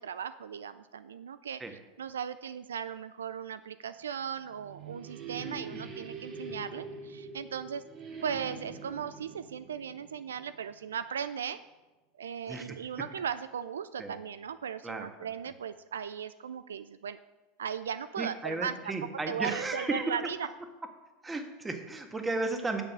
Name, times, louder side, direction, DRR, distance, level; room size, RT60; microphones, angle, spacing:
voice 1, 0.0-1.6 2.0-7.8 8.2-11.6 12.2-17.2 17.6-18.9 19.3-20.5, right 8 dB, 85° right, 14 dB, 0.3 m, -37 dB
sound 1, 4.2-10.9, right 4 dB, 45° right, 2.2 m, -44 dB
voice 2, 5.4-5.8 12.5-12.7 14.0-14.2 14.8-15.1 18.2-20.2 21.2-22.8, right 2 dB, 15° right, 5 dB, 1.6 m, -34 dB
9.2 x 6.9 x 6.1 m, 1.1 s
hypercardioid pair, 85°, 0 cm